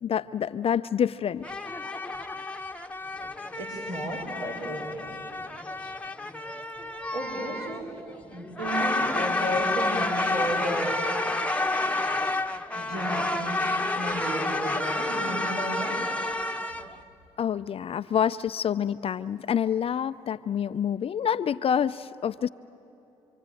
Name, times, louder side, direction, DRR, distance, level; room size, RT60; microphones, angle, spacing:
voice 1, 0.0-1.5 17.4-22.5, left 8 dB, 45° left, 12 dB, 0.5 m, -27 dB
sound 1, 1.4-16.9, left 2 dB, 10° left, 1.2 m, -30 dB
voice 2, 3.5-5.2 7.1-7.9 8.2-11.1 12.7-16.0, equal, 80° right, -4 dB, 5.2 m, -33 dB
27.0 x 23.5 x 9.1 m, 2.9 s
hypercardioid pair, 60°, 13 cm